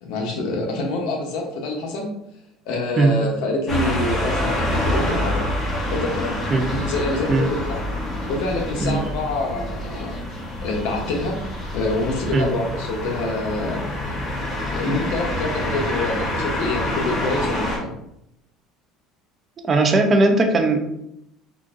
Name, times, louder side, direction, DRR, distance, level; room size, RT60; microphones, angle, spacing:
voice 1, 0.0-2.1 2.7-5.5 5.9-6.4 6.7-7.8 8.3-10.2 10.6-11.4 11.7-14.2 14.7-17.9, left 2 dB, 75° left, 0 dB, 0.9 m, -26 dB
sound 1, 3.7-17.8, left 1 dB, 30° left, 1.2 m, -27 dB
voice 2, 19.6-20.8, right 2 dB, 30° right, 5 dB, 0.5 m, -18 dB
3.7 x 2.5 x 2.5 m, 0.79 s
cardioid pair, 125°, 0 cm